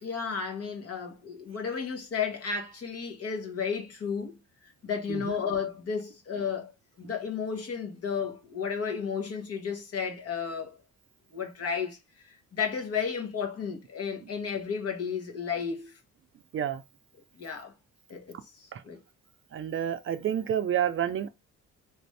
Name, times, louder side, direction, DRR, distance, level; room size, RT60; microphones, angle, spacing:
voice 1, 0.0-4.4 4.8-6.7 7.0-10.8 11.3-12.0 12.2-16.0 17.4-17.7 18.1-19.0, left 6 dB, 50° left, 1.2 m, -33 dB
voice 2, 19.5-21.3, right 9 dB, 45° right, 0.4 m, -29 dB
3.3 x 2.5 x 3.2 m
cardioid pair, 90°, 30 cm